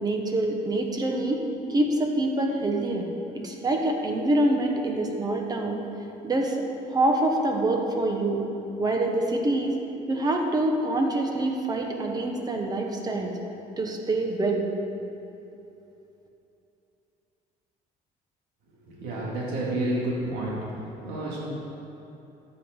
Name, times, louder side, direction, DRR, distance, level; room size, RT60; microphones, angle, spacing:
voice 1, 0.0-1.4 1.7-5.8 6.2-6.6 6.9-8.5 8.8-9.8 10.1-13.3 13.8-14.6, right 2 dB, 25° right, 2 dB, 1.2 m, -25 dB
voice 2, 18.9-20.7 21.0-21.4, right 1 dB, 90° right, -5 dB, 2.3 m, -29 dB
13.0 x 8.0 x 3.8 m, 2.9 s
cardioid pair, 130°, 16 cm